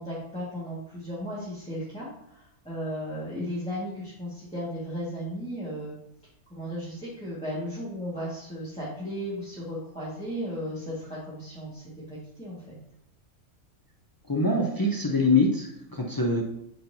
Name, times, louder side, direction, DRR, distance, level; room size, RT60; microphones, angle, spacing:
voice 1, 0.0-5.9 6.5-12.8, equal, 5° left, -10 dB, 1.7 m, -35 dB
voice 2, 14.3-16.4, left 2 dB, 30° left, 0 dB, 0.4 m, -24 dB
9.3 x 4.4 x 2.7 m, 0.76 s
omnidirectional pair, 1.5 m